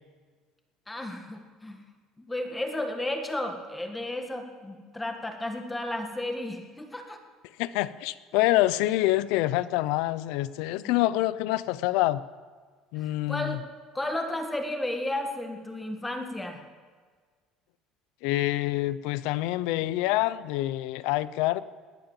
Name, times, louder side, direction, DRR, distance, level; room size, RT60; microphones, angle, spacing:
voice 1, 0.9-1.8 2.2-7.2 13.0-13.6 13.9-16.6, left 1 dB, 10° left, 5 dB, 1.6 m, -33 dB
voice 2, 7.6-12.2 12.9-13.6 18.2-21.6, left 16 dB, 75° left, 17 dB, 0.5 m, -26 dB
20.0 x 9.0 x 7.3 m, 1.5 s
cardioid pair, 150°, 0 cm